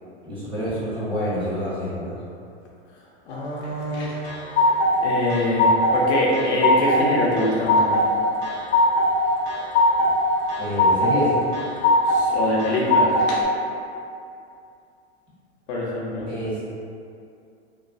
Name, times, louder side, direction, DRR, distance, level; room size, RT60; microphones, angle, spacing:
voice 1, 0.2-2.2 10.6-11.3 16.3-16.7, equal, 15° right, -11 dB, 1.2 m, -27 dB
voice 2, 3.3-4.1 5.0-8.0 12.3-13.1 15.7-16.3, left 1 dB, 70° left, -4 dB, 0.7 m, -24 dB
sound 1, 3.9-4.9 5.3-6.0 6.3-7.0 7.4-8.1 8.4-9.1 9.5-10.1 10.5-11.2 11.5-12.2 12.6-13.4, left 2 dB, 30° left, 0.5 m, -19 dB
3.1 x 2.3 x 2.4 m, 2.5 s
hypercardioid pair, 110°, 34 cm